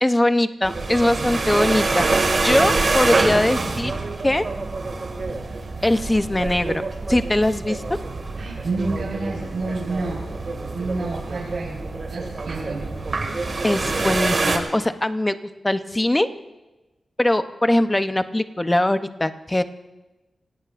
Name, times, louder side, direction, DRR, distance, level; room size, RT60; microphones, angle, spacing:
voice 1, 0.0-2.0 2.4-3.9 4.2-4.4 5.8-6.8 7.1-7.8 13.6-15.3 15.6-16.3 17.2-19.6, left 1 dB, 15° left, 10 dB, 0.7 m, -21 dB
sound 1, 0.6-14.6, right 3 dB, 50° right, 2.0 m, -25 dB
voice 2, 8.3-10.2 10.7-11.8 12.1-12.8, right 3 dB, 80° right, -6 dB, 4.3 m, -29 dB
27.5 x 17.5 x 2.5 m, 1.1 s
wide cardioid pair, 115°, 0 cm